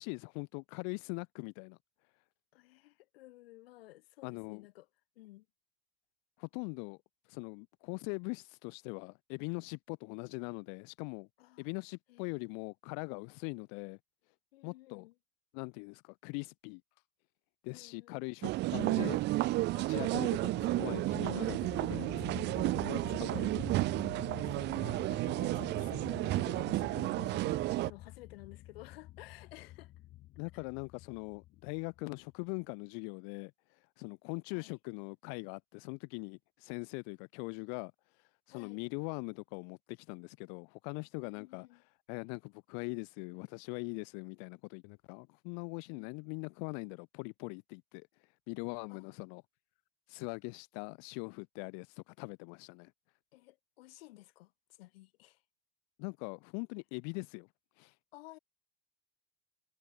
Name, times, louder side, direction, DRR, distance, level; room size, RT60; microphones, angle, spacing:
voice 1, 0.0-1.8 4.2-4.7 6.4-7.0 7.3-11.3 11.6-14.0 14.6-15.1 15.5-16.8 17.6-19.3 19.7-22.4 22.8-23.3 23.6-23.7 30.4-33.5 34.0-37.9 38.5-41.7 42.1-48.1 48.5-49.4 50.1-52.9 56.0-57.5 57.8-57.9, left 40 dB or more, 65° left, 2.2 m, -42 dB
voice 2, 2.5-4.9 5.1-5.4 11.4-11.7 12.1-12.3 14.5-15.1 17.7-18.3 23.1-23.5 24.3-29.9 34.5-34.7 38.5-38.8 41.2-41.8 45.9-46.2 48.9-49.1 53.3-54.5 54.8-55.4 58.1-58.4, left 18 dB, 85° left, 4.9 m, -54 dB
sound 1, 18.4-27.9, right 18 dB, 40° right, 0.4 m, -32 dB
sound 2, 19.9-32.3, left 15 dB, 45° left, 1.1 m, -48 dB
supercardioid pair, 120°, 29 cm